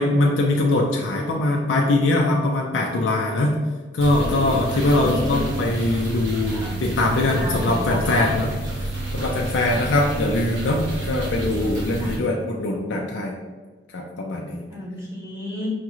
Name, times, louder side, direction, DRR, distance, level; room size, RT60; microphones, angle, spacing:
voice 1, 0.0-3.5 3.9-13.4 13.9-14.6, left 2 dB, 90° left, -1 dB, 0.4 m, -22 dB
sound 1, 4.0-12.2, right 2 dB, 85° right, 1.1 m, -29 dB
voice 2, 4.1-5.4 6.5-6.8 7.1-8.4 9.7-9.9 11.9-12.2 14.7-15.7, left 1 dB, 15° right, -5 dB, 0.9 m, -32 dB
5.1 x 2.4 x 3.0 m, 1.4 s
head